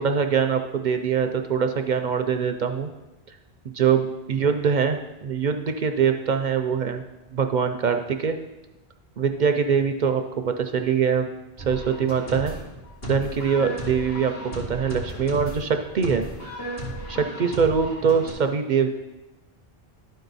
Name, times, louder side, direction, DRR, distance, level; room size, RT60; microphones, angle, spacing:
voice 1, 0.0-2.9 3.7-7.0 7.3-8.4 9.2-11.3 11.7-12.5 13.0-16.3 17.1-18.9, right 6 dB, 55° right, 6 dB, 0.6 m, -23 dB
sound 1, 11.6-18.3, right 1 dB, 65° left, 2.5 m, -35 dB
12.0 x 4.6 x 4.0 m, 1.0 s
omnidirectional pair, 1.1 m